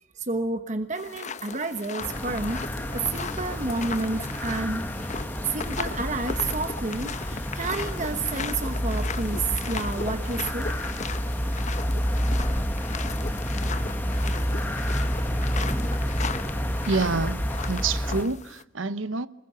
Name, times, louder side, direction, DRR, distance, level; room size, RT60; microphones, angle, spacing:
voice 1, 0.0-2.6 2.9-5.1 5.4-10.7, right 3 dB, 40° right, 1.2 m, -30 dB
sound 1, 0.9-18.6, left 5 dB, 35° left, 1.0 m, -37 dB
sound 2, 2.0-18.2, equal, 10° left, 1.7 m, -29 dB
voice 2, 16.8-19.3, right 3 dB, 80° right, 1.0 m, -27 dB
26.5 x 21.0 x 8.2 m
head